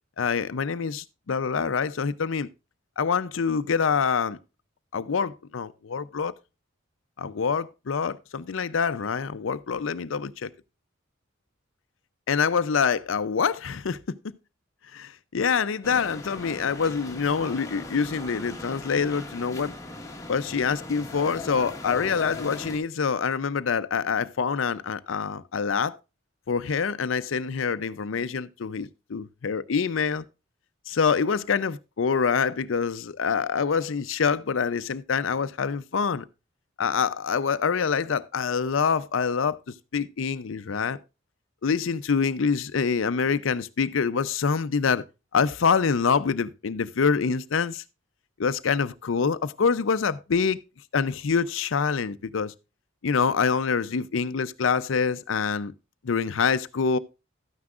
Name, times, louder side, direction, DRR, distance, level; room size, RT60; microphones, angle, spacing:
voice 1, 0.2-2.5 3.0-4.4 4.9-6.3 7.2-10.5 12.3-14.2 14.9-19.7 20.3-25.9 26.5-30.2 30.9-36.2 36.8-39.6 39.9-41.0 41.6-45.0 45.3-47.8 48.4-50.6 50.9-52.5 53.0-55.7 56.0-57.0, left 5 dB, 75° left, 0.5 m, -26 dB
sound 1, 15.8-22.8, left 2 dB, 15° left, 1.3 m, -39 dB
12.5 x 9.6 x 2.4 m
head